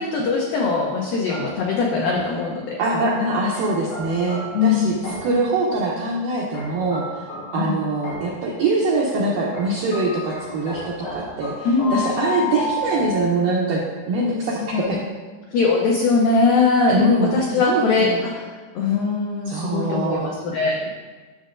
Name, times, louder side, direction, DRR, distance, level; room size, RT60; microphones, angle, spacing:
voice 1, 0.0-2.8 4.5-5.2 7.6-7.8 11.7-12.0 14.7-15.0 15.5-17.0 17.3-18.5 18.8-20.8, left 4 dB, 85° left, -1 dB, 1.9 m, -21 dB
sound 1, 1.3-2.5 3.5-5.5 6.5-8.5 9.5-13.8, left 2 dB, 55° left, 4.1 m, -32 dB
voice 2, 2.8-7.2 7.5-13.8 14.1-15.0 16.9-17.3 17.7-18.2 19.5-20.3, right 2 dB, 80° right, -4 dB, 1.9 m, -23 dB
11.5 x 6.5 x 2.5 m, 1.4 s
omnidirectional pair, 5.0 m